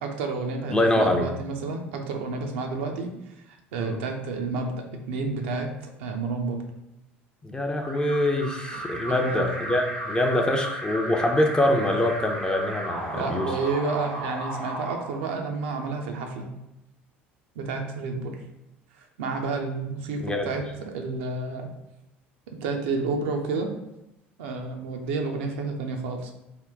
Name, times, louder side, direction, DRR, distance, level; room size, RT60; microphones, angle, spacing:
voice 1, 0.0-3.1 3.7-5.7 6.0-6.6 9.1-9.5 13.1-16.5 17.6-18.4 19.2-21.7 22.6-23.7 24.4-26.3, right 4 dB, 65° right, 3 dB, 0.5 m, -30 dB
voice 2, 0.7-1.3 3.8-4.0 7.4-13.5 20.2-20.5, left 1 dB, 15° left, 3 dB, 0.5 m, -24 dB
Alarm, 7.8-15.7, right 1 dB, 90° right, 0.8 m, -34 dB
3.6 x 2.2 x 3.5 m, 0.89 s
figure-of-eight pair, 65°, 6 cm